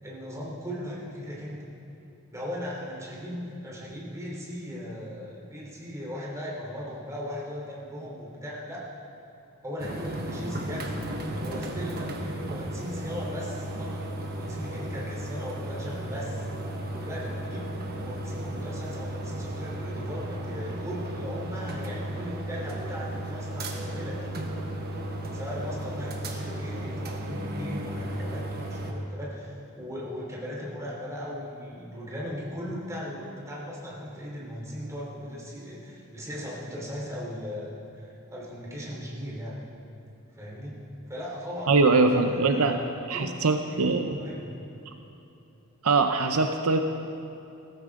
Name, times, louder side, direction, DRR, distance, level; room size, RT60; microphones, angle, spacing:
voice 1, 0.0-1.6 2.3-8.9 9.6-11.0 11.4-14.0 14.3-16.4 16.9-17.7 18.0-24.4 25.3-39.6 40.3-40.8 41.1-42.8 43.1-43.3 43.6-44.6, equal, 15° right, -5 dB, 3.4 m, -38 dB
sound 1, 9.8-28.9, right 1 dB, 45° right, 1.3 m, -34 dB
voice 2, 41.7-42.8 43.1-44.1 45.8-46.8, right 3 dB, 70° right, 6 dB, 0.7 m, -22 dB
17.5 x 14.5 x 3.7 m, 2.9 s
head